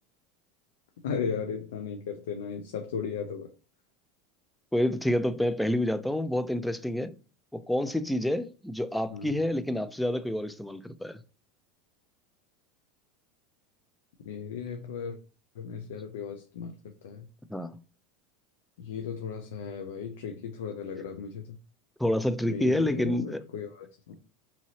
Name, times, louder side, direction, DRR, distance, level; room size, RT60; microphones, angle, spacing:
voice 1, 1.0-3.5 9.1-9.3 14.2-15.2 15.6-16.7 17.0-17.3 18.8-21.6 22.5-24.2, left 6 dB, 75° left, 0.4 m, -36 dB
voice 2, 4.7-7.1 7.5-11.2 17.5-17.8 22.0-23.4, left 1 dB, 5° left, 0.3 m, -28 dB
2.8 x 2.6 x 2.8 m
hypercardioid pair, 95°, 0 cm